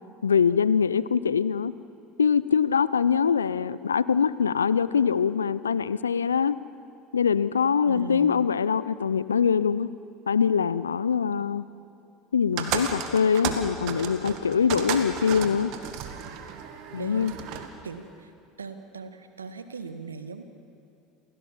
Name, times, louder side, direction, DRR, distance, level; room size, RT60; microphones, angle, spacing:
voice 1, 0.2-1.7 2.2-6.6 7.1-9.9 10.3-11.6 12.3-15.7 16.9-17.4, left 6 dB, 85° left, 17 dB, 0.5 m, -23 dB
voice 2, 7.8-8.2 17.0-17.3 17.8-18.3 18.6-20.4, right 4 dB, 85° right, 9 dB, 1.4 m, -38 dB
sound 1, 12.6-17.7, right 8 dB, 60° right, 2.0 m, -33 dB
28.5 x 16.5 x 7.3 m, 2.6 s
figure-of-eight pair, 70°, 0 cm